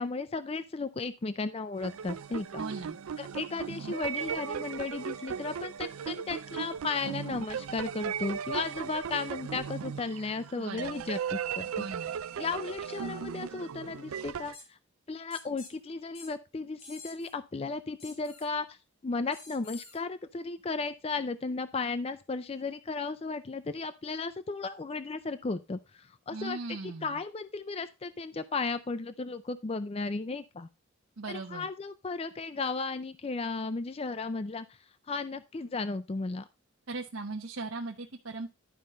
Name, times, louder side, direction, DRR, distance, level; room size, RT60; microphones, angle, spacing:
voice 1, 0.0-2.6 3.2-11.7 12.4-14.8 15.1-18.8 19.0-30.7 31.3-34.7 35.1-36.4, left 4 dB, 30° left, 12 dB, 0.4 m, -35 dB
sound 1, 1.7-14.6, right 7 dB, 85° right, 0.4 m, -37 dB
voice 2, 2.6-3.0 10.6-11.1 11.8-12.1 26.3-27.2 31.2-31.7 36.9-38.5, right 3 dB, 70° right, 0 dB, 0.9 m, -38 dB
sound 2, 14.5-14.7 15.3-15.7 16.1-16.3 16.8-17.3 18.0-18.5 19.3-20.0, left 4 dB, 75° left, 3.7 m, -48 dB
11.5 x 5.3 x 4.3 m, 0.28 s
head